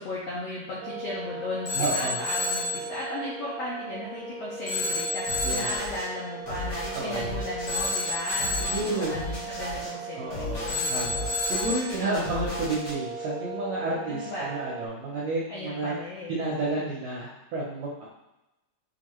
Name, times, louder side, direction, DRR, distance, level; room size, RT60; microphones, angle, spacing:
voice 1, 0.0-10.9 14.1-14.5 15.5-16.3, left 2 dB, 80° left, -6 dB, 1.4 m, -36 dB
sound 1, 0.8-14.9, right 4 dB, 90° right, 2.2 m, -38 dB
Telephone, 1.7-2.8 4.7-5.8 7.7-8.8 10.7-11.8, left 2 dB, 60° left, 1.6 m, -29 dB
voice 2, 1.7-2.2 5.4-5.8 6.9-7.4 8.6-9.3 10.1-16.0 16.3-18.1, right 2 dB, 75° right, -6 dB, 1.5 m, -31 dB
sound 2, 5.3-6.1 6.4-9.9 10.3-12.9, left 1 dB, 40° left, 1.6 m, -36 dB
6.2 x 2.5 x 3.0 m, 0.94 s
omnidirectional pair, 3.8 m